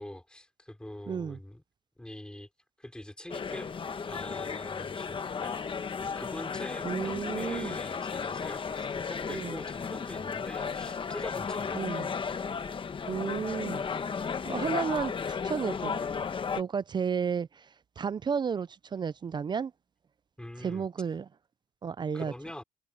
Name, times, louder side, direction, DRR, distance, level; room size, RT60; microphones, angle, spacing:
voice 1, 0.0-1.6 2.0-2.5 2.8-3.7 4.1-11.8 20.4-20.9 22.1-22.6, left 1 dB, 5° left, 4.4 m, -44 dB
voice 2, 1.1-1.4 6.8-7.8 9.3-9.6 11.7-12.1 13.1-13.8 14.1-16.0 16.5-19.7 20.6-21.3 21.8-22.3, right 6 dB, 25° right, 0.4 m, -33 dB
sound 1, 3.3-16.6, left 6 dB, 30° left, 1.1 m, -34 dB
cardioid pair, 110°, 17 cm